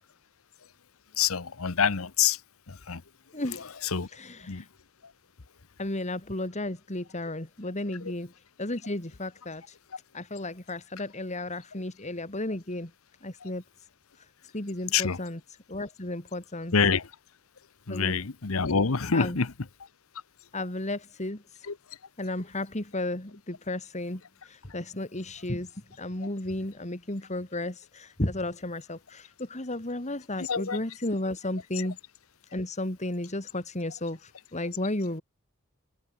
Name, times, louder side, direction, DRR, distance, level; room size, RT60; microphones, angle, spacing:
voice 1, 1.2-2.4 2.7-3.0 3.5-3.6 3.9-4.1 4.5-4.6 14.9-15.2 16.7-17.1 17.9-19.5 21.7-21.8 30.5-30.8, left 6 dB, 85° left, 1.0 m, -26 dB
voice 2, 3.3-3.8 4.1-4.7 5.8-8.3 8.6-9.8 10.1-12.9 13.2-13.6 14.2-16.7 17.9-18.1 19.1-19.4 20.5-21.7 22.2-32.0 32.5-35.2, left 1 dB, 35° left, 3.0 m, -34 dB
head